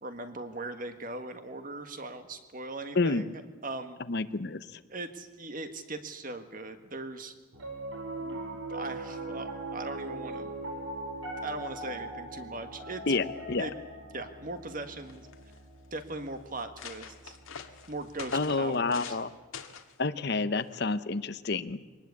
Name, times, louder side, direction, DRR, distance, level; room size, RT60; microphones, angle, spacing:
voice 1, 0.0-4.0 4.9-7.3 8.2-8.4 8.7-10.5 11.4-13.3 13.6-13.7 14.1-15.3 15.9-17.4 17.9-19.2, right 2 dB, 40° right, 8 dB, 1.7 m, -39 dB
voice 2, 2.9-3.3 4.1-4.8 13.1-13.7 18.3-19.3 20.0-21.8, left 3 dB, 50° left, 13 dB, 0.8 m, -29 dB
Piano, 7.5-17.9, right 2 dB, 70° right, 4.8 m, -40 dB
sound 1, 14.7-14.8 15.0-15.6 16.2-16.3 16.6-19.2 19.5-19.9 20.7-21.0, left 6 dB, 80° left, 1.7 m, -45 dB
23.5 x 19.5 x 8.4 m, 1.2 s
head